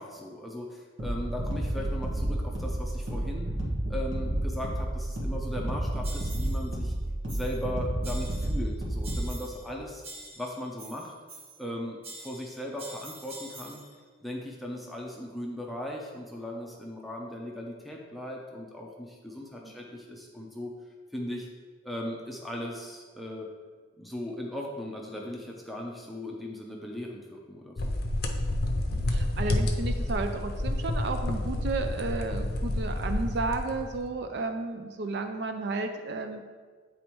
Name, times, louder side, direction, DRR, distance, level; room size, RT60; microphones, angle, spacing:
voice 1, 0.0-3.5 3.9-6.9 7.3-10.0 10.4-11.1 11.6-13.8 14.2-20.7 21.1-21.5 21.8-23.5 24.0-27.9, left 1 dB, ahead, -1 dB, 0.5 m, -38 dB
sound 1, 1.0-9.3, right 1 dB, 75° right, 1.4 m, -31 dB
sound 2, 6.0-6.7 7.3-7.7 8.0-8.7 9.0-9.7 10.0-11.7 12.0-13.9, right 2 dB, 30° right, 0.8 m, -46 dB
sound 3, 27.8-34.1, left 1 dB, 50° left, 0.5 m, -29 dB
voice 2, 28.9-36.4, right 3 dB, 60° right, 6 dB, 0.4 m, -33 dB
8.6 x 4.1 x 3.0 m, 1.5 s
head